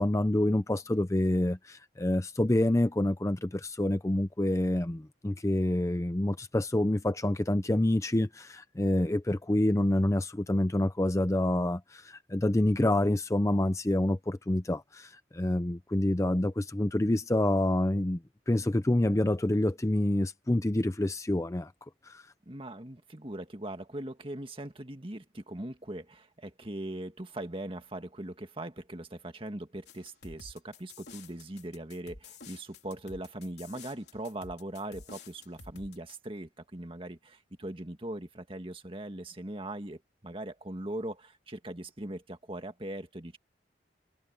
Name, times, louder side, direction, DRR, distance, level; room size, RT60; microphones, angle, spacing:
voice 1, 0.0-18.2 18.5-21.7 22.0-22.2, left 1 dB, 15° left, 0.6 m, -27 dB
voice 2, 22.5-43.4, right 1 dB, 30° right, 1.9 m, -40 dB
sound 1, 29.9-36.2, left 4 dB, 65° left, 4.1 m, -50 dB
head